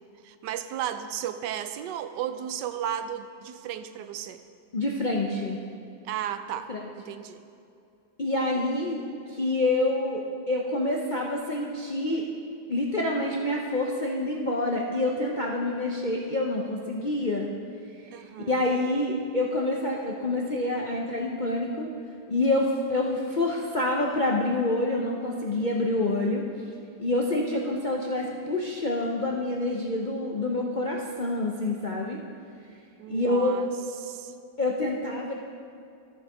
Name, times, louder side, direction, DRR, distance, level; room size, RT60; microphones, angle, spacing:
voice 1, 0.2-4.4 6.0-6.7 7.0-7.4 18.1-18.9 33.0-33.7 34.0-34.3, right 10 dB, 85° right, 10 dB, 1.2 m, -34 dB
voice 2, 4.7-5.6 6.7-6.9 8.2-9.0 9.3-12.3 12.7-17.5 18.1-21.9 22.3-26.4 27.0-32.2 33.1-33.6 34.6-35.3, left 2 dB, 55° left, -1 dB, 0.5 m, -27 dB
13.5 x 6.4 x 4.8 m, 2.5 s
omnidirectional pair, 1.8 m